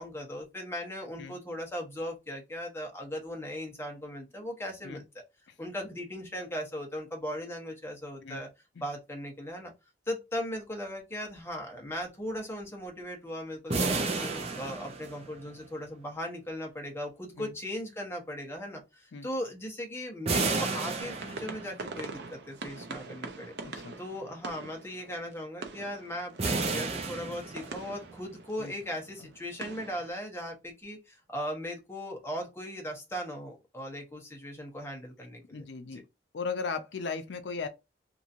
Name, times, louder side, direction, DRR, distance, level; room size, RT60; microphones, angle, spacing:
voice 1, 0.0-5.0 5.6-8.5 8.8-9.7 10.1-23.5 24.0-36.0, equal, 15° left, 1.0 m, -38 dB
sound 1, 13.7-15.6 20.3-21.9 26.4-28.0, right 3 dB, 35° right, 0.7 m, -31 dB
sound 2, 21.0-30.1, right 3 dB, 70° right, 0.6 m, -44 dB
voice 2, 23.6-23.9 28.6-28.7 35.5-36.0 36.3-37.7, left 4 dB, 80° left, 0.5 m, -36 dB
2.9 x 2.6 x 2.5 m
head